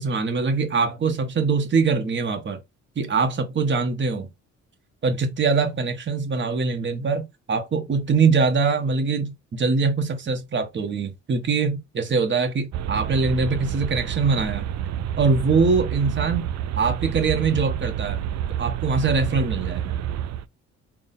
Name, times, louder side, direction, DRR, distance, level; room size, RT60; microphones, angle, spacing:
voice 1, 0.0-2.6 2.9-4.3 5.0-14.7 15.2-16.5 16.8-18.2 18.6-20.0, right 4 dB, 40° right, 1.3 m, -23 dB
sound 1, 12.7-20.4, right 10 dB, 65° right, 0.5 m, -28 dB
3.7 x 2.3 x 4.0 m
cardioid pair, 90°, 30 cm